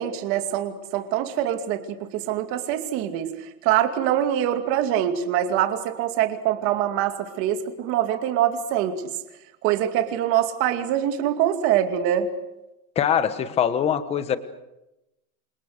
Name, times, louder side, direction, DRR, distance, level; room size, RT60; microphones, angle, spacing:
voice 1, 0.0-9.0 9.6-12.3, right 11 dB, 30° right, 7 dB, 2.4 m, -24 dB
voice 2, 12.9-14.4, left 8 dB, 15° left, 12 dB, 1.2 m, -23 dB
28.5 x 27.5 x 6.6 m, 0.93 s
supercardioid pair, 175°, 43 cm